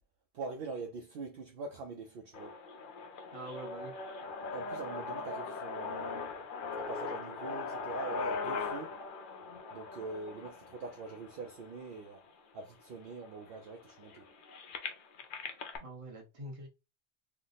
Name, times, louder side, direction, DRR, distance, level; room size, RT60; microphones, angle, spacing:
voice 1, 0.3-2.6 4.5-6.4 6.8-9.0 9.7-12.2 12.5-14.3, right 4 dB, 60° right, 0.7 m, -44 dB
sound 1, 2.3-12.3 13.0-13.1 13.3-15.8, left 4 dB, 55° left, 0.7 m, -40 dB
voice 2, 3.3-3.9 15.8-16.7, right 1 dB, 30° right, 0.9 m, -45 dB
3.4 x 2.0 x 3.9 m
omnidirectional pair, 1.2 m